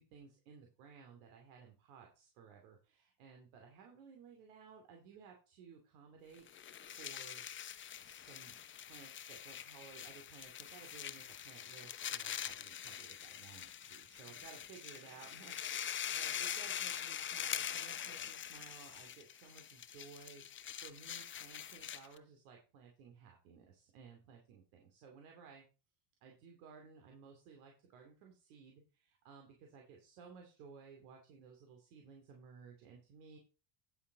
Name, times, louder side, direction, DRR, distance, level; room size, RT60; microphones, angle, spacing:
voice 1, 0.0-6.4 7.0-7.5 8.0-8.6 8.9-25.6 26.2-33.4, right 6 dB, 70° right, 2 dB, 2.8 m, -57 dB
sound 1, 6.4-22.2, left 9 dB, 25° left, 0.8 m, -44 dB
10.0 x 7.5 x 4.0 m, 0.32 s
supercardioid pair, 100°, 45 cm